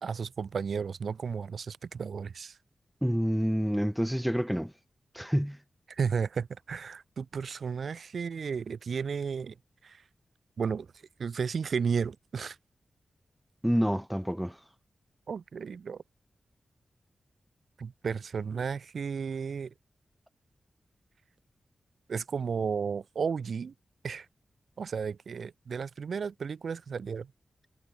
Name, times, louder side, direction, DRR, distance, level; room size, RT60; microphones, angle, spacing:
voice 1, 0.0-2.5 5.9-9.5 9.8-10.0 10.6-10.9 11.2-12.6 15.3-16.0 17.8-19.7 22.1-23.7 24.0-24.2 24.8-27.3, right 6 dB, 75° right, 1.5 m, -33 dB
voice 2, 3.0-4.7 5.1-5.6 13.6-14.6, equal, 5° right, 5.2 m, -28 dB
cardioid pair, 45°, 0 cm